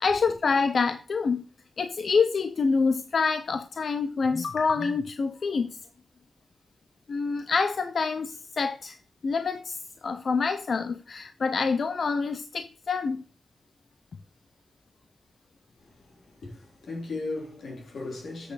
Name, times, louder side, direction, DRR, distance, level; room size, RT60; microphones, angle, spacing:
voice 1, 0.0-1.4 1.8-5.8 7.1-9.0 9.2-13.2, left 4 dB, 60° left, 0.5 m, -26 dB
voice 2, 15.8-18.5, left 2 dB, 90° left, 3.7 m, -37 dB
8.1 x 6.4 x 4.0 m
wide cardioid pair, 120°, 0 cm